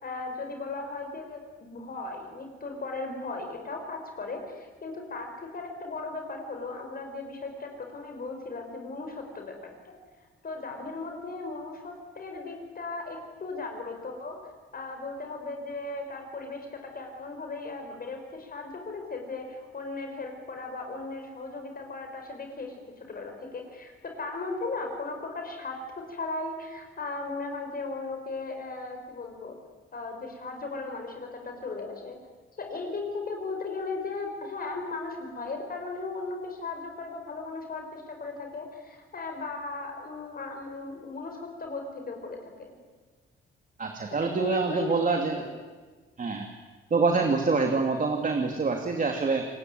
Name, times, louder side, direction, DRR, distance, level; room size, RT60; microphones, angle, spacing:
voice 1, 0.0-9.9 10.4-14.4 14.7-29.6 29.9-32.2 32.6-42.7 44.1-45.5, left 3 dB, 45° left, 3 dB, 5.3 m, -37 dB
voice 2, 43.8-45.4 46.2-46.5 46.9-49.5, right 4 dB, 40° right, 4 dB, 2.7 m, -26 dB
27.5 x 20.0 x 9.4 m, 1.4 s
cardioid pair, 105°, 21 cm